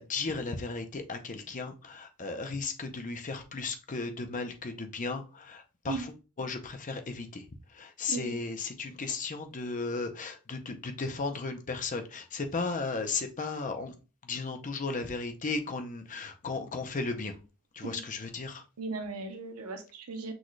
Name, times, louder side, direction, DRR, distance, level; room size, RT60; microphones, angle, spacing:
voice 1, 0.0-13.9 14.2-17.4 17.7-18.6, left 3 dB, 35° left, 6 dB, 0.6 m, -35 dB
voice 2, 18.8-20.3, right 4 dB, 70° right, 6 dB, 0.8 m, -37 dB
6.2 x 2.4 x 3.1 m, 0.32 s
head